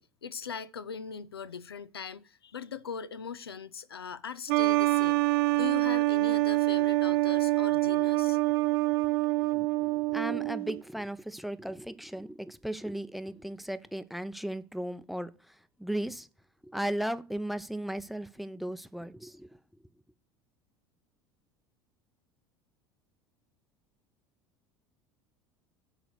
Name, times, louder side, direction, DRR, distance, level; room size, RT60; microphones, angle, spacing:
voice 1, 0.0-8.4, left 6 dB, 90° left, 0.4 m, -40 dB
sound 1, 4.5-10.8, right 21 dB, 65° right, 0.4 m, -26 dB
voice 2, 9.5-16.3 16.6-19.6, right 1 dB, ahead, 0.6 m, -36 dB
10.5 x 4.0 x 6.6 m
hypercardioid pair, 70°, 12 cm